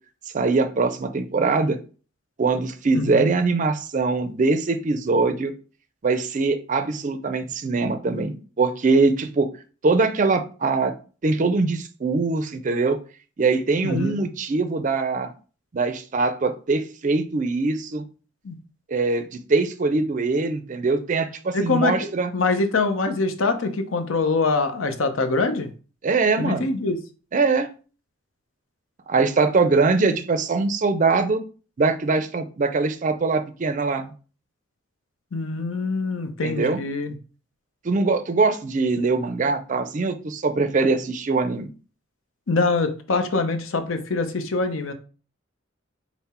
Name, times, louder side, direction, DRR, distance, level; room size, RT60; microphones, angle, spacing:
voice 1, 0.3-1.8 2.4-5.5 6.0-9.5 9.8-10.9 11.2-13.0 13.4-15.3 15.7-18.0 18.9-22.3 26.0-26.7 27.3-27.7 29.1-31.4 31.8-34.1 36.4-36.8 37.8-41.7, right 3 dB, 40° right, 9 dB, 0.4 m, -22 dB
voice 2, 2.9-3.3 13.8-14.2 18.4-18.6 21.5-25.7 26.4-27.0 35.3-37.1 42.5-44.9, left 3 dB, 85° left, 7 dB, 0.7 m, -24 dB
5.7 x 2.0 x 4.2 m, 0.37 s
head